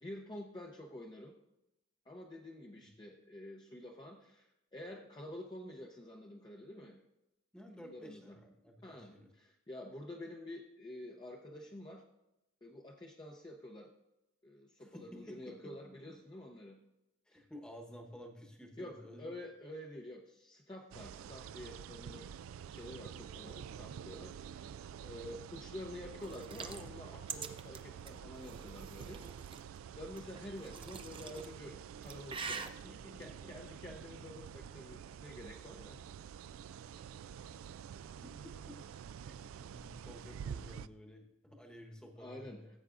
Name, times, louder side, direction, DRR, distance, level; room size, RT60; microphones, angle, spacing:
voice 1, 0.0-1.3 2.1-7.0 7.8-8.4 8.8-12.0 12.6-13.9 14.4-16.8 17.3-17.4 18.8-22.3 22.7-24.7 25.0-29.2 30.0-32.7 33.2-36.0 42.2-42.6, left 1 dB, 20° left, 0 dB, 0.6 m, -49 dB
voice 2, 7.5-9.3 14.8-15.5 15.8-15.9 17.3-19.3 32.8-33.5 38.2-38.8 39.1-42.7, equal, 5° left, 2 dB, 1.0 m, -53 dB
sound 1, 20.9-40.9, right 8 dB, 85° right, 0.3 m, -48 dB
sound 2, 26.2-29.6 30.2-31.5 31.9-32.7, right 5 dB, 25° right, 0.5 m, -45 dB
15.0 x 7.9 x 2.5 m, 0.91 s
head